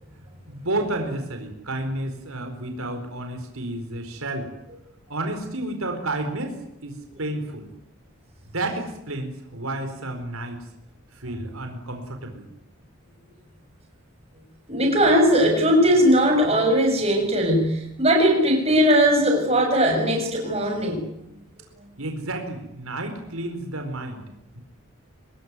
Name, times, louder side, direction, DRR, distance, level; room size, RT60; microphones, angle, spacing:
voice 1, 0.5-4.5 5.1-7.7 8.4-10.7 11.1-12.5 22.0-24.2 24.5-24.6, right 1 dB, 75° right, 5 dB, 4.3 m, -31 dB
voice 2, 14.7-21.1, equal, 25° right, 1 dB, 7.2 m, -19 dB
26.0 x 20.0 x 9.6 m, 0.81 s
head